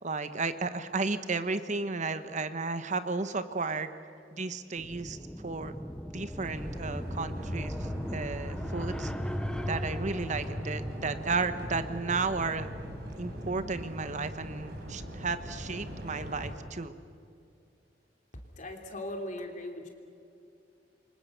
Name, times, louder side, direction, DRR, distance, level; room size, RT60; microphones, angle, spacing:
voice 1, 0.0-3.9 4.3-5.2 5.4-5.7 6.1-9.1 9.7-12.7 13.2-16.9, right 4 dB, 40° right, 11 dB, 1.1 m, -33 dB
sound 1, 4.8-13.6, equal, 5° left, 0.7 m, -38 dB
sound 2, 6.4-16.5, equal, 60° right, 5.2 m, -41 dB
voice 2, 18.6-19.9, left 1 dB, 45° left, 3 dB, 3.1 m, -38 dB
28.5 x 24.5 x 6.9 m, 2.5 s
head